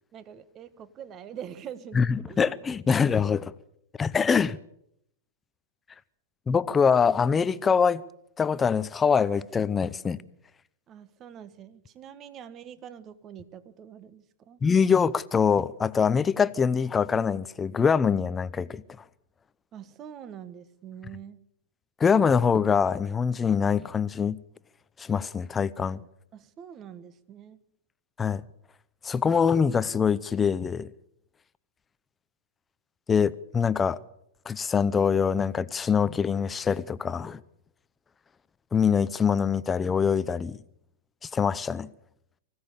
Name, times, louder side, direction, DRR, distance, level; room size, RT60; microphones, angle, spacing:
voice 1, 0.1-2.4 10.9-14.6 19.7-21.4 26.3-27.6, right 9 dB, 30° right, 1.4 m, -44 dB
voice 2, 1.9-3.5 4.0-4.6 6.5-8.0 8.4-10.2 14.6-18.8 22.0-24.4 25.0-26.0 28.2-28.4 29.0-30.9 33.1-34.0 34.5-37.4 38.7-40.6 41.2-41.9, left 6 dB, 15° left, 0.7 m, -24 dB
25.0 x 16.0 x 7.0 m
hypercardioid pair, 130°, 0 cm